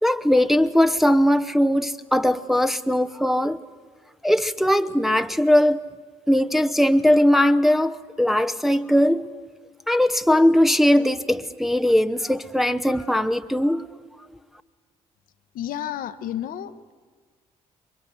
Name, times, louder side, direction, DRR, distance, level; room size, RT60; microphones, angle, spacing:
voice 1, 0.0-3.6 4.2-5.9 6.3-9.3 9.9-13.9, left 1 dB, ahead, 0.8 m, -20 dB
voice 2, 15.5-16.9, left 11 dB, 55° left, 1.0 m, -31 dB
29.0 x 24.5 x 8.0 m
figure-of-eight pair, 45°, 17 cm